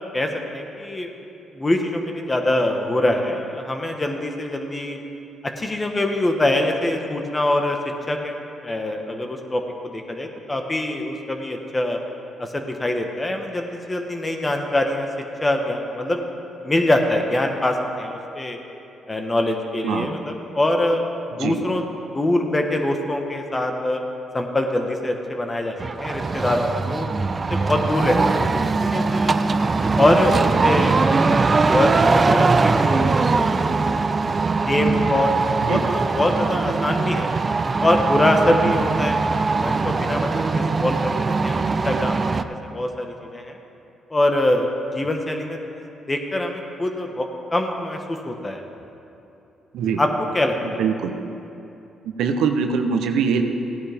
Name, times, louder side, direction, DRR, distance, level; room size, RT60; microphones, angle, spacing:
voice 1, 0.1-1.1 1.5-5.0 5.4-7.8 8.1-12.0 12.4-15.1 15.4-16.2 16.6-18.6 19.1-21.0 21.4-21.8 22.1-24.0 24.3-27.1 27.3-29.4 30.0-30.4 30.6-33.8 34.6-35.3 35.6-37.3 37.8-39.2 39.6-43.6 44.1-48.6 50.0-50.1 50.3-50.9, left 1 dB, 25° left, 3 dB, 1.4 m, -24 dB
voice 2, 19.8-20.2 21.4-21.6 35.6-35.8 49.7-50.0 50.8-51.2 52.2-53.4, right 6 dB, 80° right, 6 dB, 0.8 m, -22 dB
sound 1, 25.8-42.4, right 4 dB, 35° right, 0.5 m, -21 dB
16.0 x 9.8 x 3.6 m, 2.8 s
supercardioid pair, 65°, 0 cm